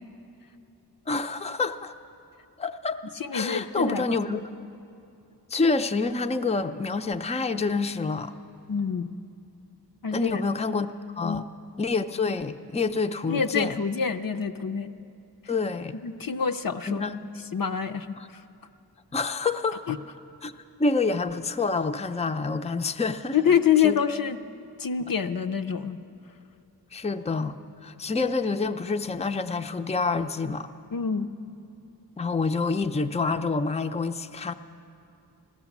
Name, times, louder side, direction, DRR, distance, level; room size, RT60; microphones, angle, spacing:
voice 1, 1.1-1.9 2.6-3.0 3.3-4.4 5.5-8.3 10.1-10.9 11.2-11.5 11.8-13.8 15.5-16.0 16.9-17.2 18.2-18.3 19.1-19.8 20.4-20.5 20.8-23.5 23.8-24.0 26.9-27.6 27.8-30.7 32.2-34.5, left 4 dB, 15° left, 8 dB, 0.5 m, -27 dB
voice 2, 3.2-4.0 8.7-9.1 10.0-10.4 11.2-11.4 13.2-14.9 15.9-17.0 17.5-18.1 18.3-18.4 19.9-20.0 23.3-24.4 24.8-26.0 30.9-31.3, left 7 dB, 60° left, 7 dB, 0.6 m, -26 dB
15.5 x 13.0 x 7.2 m, 2.6 s
wide cardioid pair, 45°, 39 cm